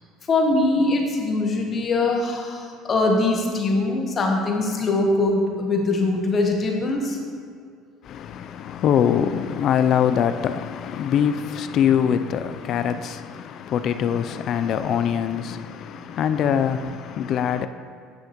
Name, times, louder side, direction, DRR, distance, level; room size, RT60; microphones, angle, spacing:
voice 1, 0.3-7.2, left 2 dB, 35° left, 1.1 m, -22 dB
voice 2, 8.0-17.7, left 8 dB, 50° left, 0.3 m, -23 dB
9.7 x 5.7 x 3.0 m
supercardioid pair, 110°, 0 cm